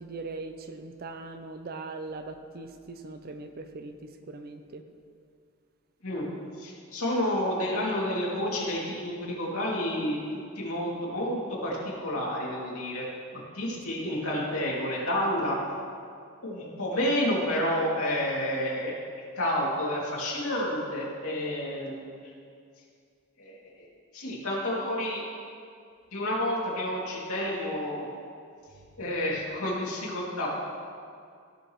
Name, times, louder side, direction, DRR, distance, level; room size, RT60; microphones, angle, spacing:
voice 1, 0.0-4.8 13.7-14.1 29.0-29.2, right 3 dB, 45° right, 8 dB, 0.5 m, -41 dB
voice 2, 6.6-13.1 13.3-15.6 16.4-18.9 19.3-22.2 23.4-23.9 24.1-25.2 26.1-28.0 29.0-30.5, left 1 dB, 70° left, -5 dB, 2.5 m, -30 dB
16.0 x 6.3 x 3.1 m, 2.3 s
head